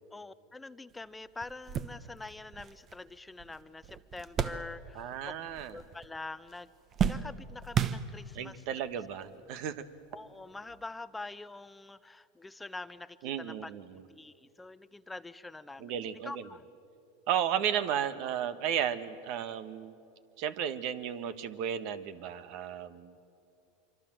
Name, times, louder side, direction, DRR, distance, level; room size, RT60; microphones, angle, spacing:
voice 1, 0.1-5.3 5.7-6.7 7.1-8.6 10.1-13.7 14.1-16.6, left 3 dB, 10° left, 14 dB, 0.7 m, -45 dB
sound 1, 0.9-1.0 1.4-5.2 5.5-6.2 6.5-8.5 9.3-9.4 10.7-10.8, right 8 dB, 35° right, 1.1 m, -34 dB
voice 2, 4.9-5.8 8.3-9.8 13.2-14.0 15.8-16.4 17.3-19.9 20.4-23.2, right 9 dB, 60° right, 12 dB, 1.4 m, -34 dB
26.5 x 24.5 x 7.7 m, 2.6 s
hypercardioid pair, 105°, 0 cm